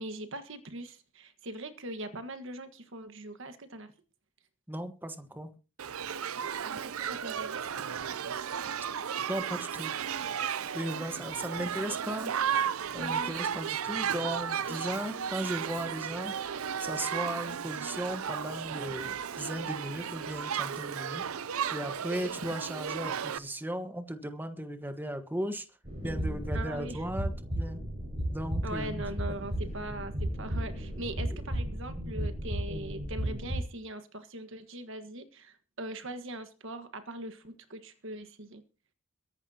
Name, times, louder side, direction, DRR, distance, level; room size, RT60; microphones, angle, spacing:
voice 1, 0.0-3.9 6.6-8.2 13.0-13.4 14.6-14.7 15.1-15.4 22.2-22.3 26.5-27.0 28.6-38.6, right 1 dB, 60° right, 10 dB, 1.5 m, -41 dB
voice 2, 4.7-5.5 9.3-9.9 10.7-12.3 12.9-16.3 16.8-21.2 21.7-25.7 26.0-27.8 28.3-29.0 31.3-31.4, right 1 dB, 10° right, 7 dB, 1.3 m, -36 dB
Shout / Human group actions, 5.8-23.4, right 8 dB, 75° right, 0.6 m, -34 dB
sound 1, 25.8-33.6, equal, 30° right, 5.7 m, -34 dB
23.0 x 11.0 x 2.9 m, 0.34 s
head